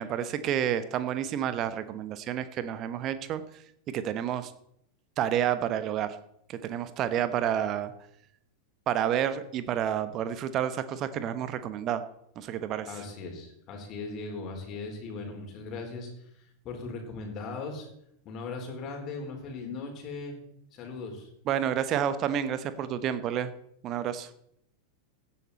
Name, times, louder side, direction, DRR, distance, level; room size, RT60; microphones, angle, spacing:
voice 1, 0.0-3.4 3.9-4.5 5.2-6.1 6.5-7.9 8.9-12.0 12.4-12.9 21.5-23.5 23.8-24.3, right 10 dB, 35° right, 12 dB, 1.1 m, -29 dB
voice 2, 12.9-17.9 18.2-20.4 20.7-21.3, left 3 dB, 35° left, 2 dB, 4.2 m, -38 dB
16.5 x 10.5 x 4.3 m, 0.73 s
figure-of-eight pair, 90°, 0 cm